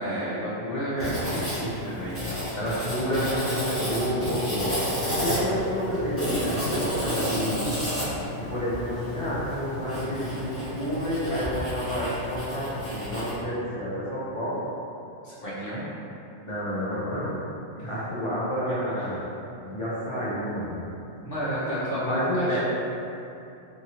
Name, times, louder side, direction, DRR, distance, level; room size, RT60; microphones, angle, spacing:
voice 1, 0.0-2.6 5.1-5.5 15.2-15.9 17.7-17.9 19.0-19.1 21.2-22.6, equal, 55° left, -10 dB, 0.9 m, -31 dB
Writing, 1.0-13.4, equal, 15° left, 0.9 m, -31 dB
voice 2, 2.5-7.6 8.5-14.6 16.4-17.3 17.8-19.2 19.6-20.8 22.1-22.6, equal, 35° left, -10 dB, 0.5 m, -29 dB
2.7 x 2.6 x 2.8 m, 2.8 s
omnidirectional pair, 1.2 m